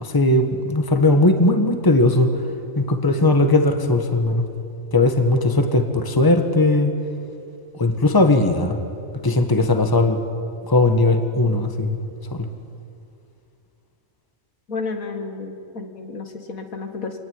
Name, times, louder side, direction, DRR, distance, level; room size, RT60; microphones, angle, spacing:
voice 1, 0.0-2.3 2.8-4.5 4.9-6.9 7.7-8.8 9.2-10.2 10.7-12.0 12.3-12.5, left 2 dB, 15° left, 6 dB, 1.5 m, -18 dB
voice 2, 14.7-17.2, left 4 dB, 75° left, 6 dB, 2.3 m, -31 dB
26.0 x 18.5 x 9.6 m, 2.5 s
omnidirectional pair, 1.5 m